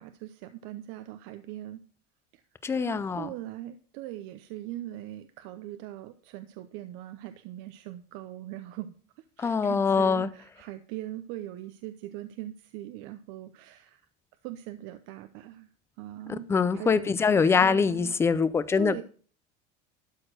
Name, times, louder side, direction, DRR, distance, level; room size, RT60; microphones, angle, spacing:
voice 1, 0.0-1.8 2.3-2.4 2.7-14.0 14.4-15.7 16.0-16.4 16.7-18.1 18.7-19.0, right 14 dB, 60° right, 0.7 m, -41 dB
voice 2, 2.6-3.3 9.4-10.3 16.3-19.0, left 5 dB, 10° left, 0.4 m, -24 dB
12.5 x 4.3 x 6.3 m
cardioid pair, 150°, 21 cm